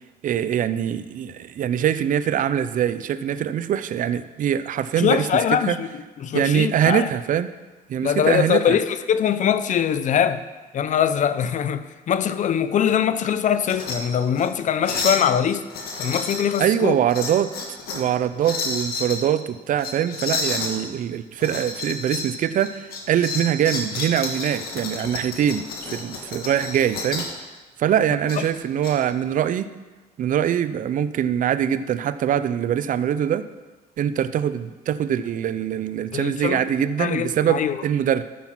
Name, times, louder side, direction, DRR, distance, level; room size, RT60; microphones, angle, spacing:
voice 1, 0.2-5.3 5.7-5.8 6.3-7.5 7.9-8.8 16.6-17.5 17.9-27.3 27.8-29.7 30.2-33.5 34.0-38.2, right 9 dB, 50° right, 13 dB, 0.6 m, -23 dB
voice 2, 4.9-7.1 8.0-10.4 10.7-15.6 16.0-17.0 28.4-28.5 36.1-36.6 37.0-37.8, left 8 dB, 45° left, 13 dB, 0.7 m, -22 dB
sound 1, 13.6-14.0 14.3-14.5 14.8-15.3 15.7-16.7 17.1-18.1 18.4-19.2 19.8-20.7 21.4-22.3 22.6-27.4 28.3-28.9, left 3 dB, 65° left, 2.1 m, -30 dB
13.5 x 6.0 x 5.8 m, 1.2 s
cardioid pair, 110°, 17 cm